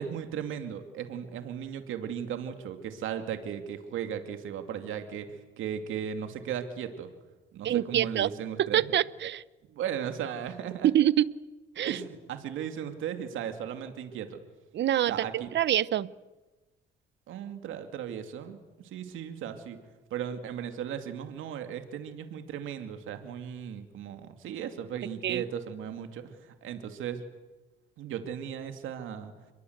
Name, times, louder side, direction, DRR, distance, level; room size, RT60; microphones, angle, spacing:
voice 1, 0.0-7.1 7.5-8.8 9.7-10.9 11.9-14.4 15.1-15.5 17.3-19.8 20.1-27.2 28.0-29.3, right 8 dB, 85° right, 7 dB, 2.5 m, -36 dB
voice 2, 7.6-8.3 8.6-9.4 10.8-11.3 11.8-12.0 14.7-16.1 25.2-25.4, right 11 dB, 65° right, 18 dB, 0.9 m, -26 dB
29.0 x 22.0 x 8.1 m, 1.1 s
cardioid pair, 90°, 20 cm